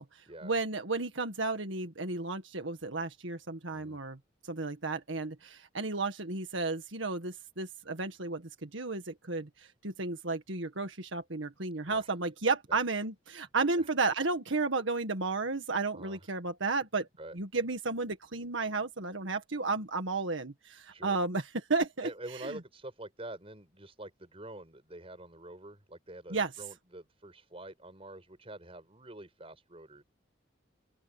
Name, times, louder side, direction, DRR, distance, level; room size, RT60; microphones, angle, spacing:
voice 1, 0.0-4.2 4.4-17.1 17.3-22.6 26.3-26.5, right 3 dB, 80° right, 1.8 m, -33 dB
voice 2, 22.0-30.0, right 1 dB, 30° right, 6.1 m, -46 dB
open air
head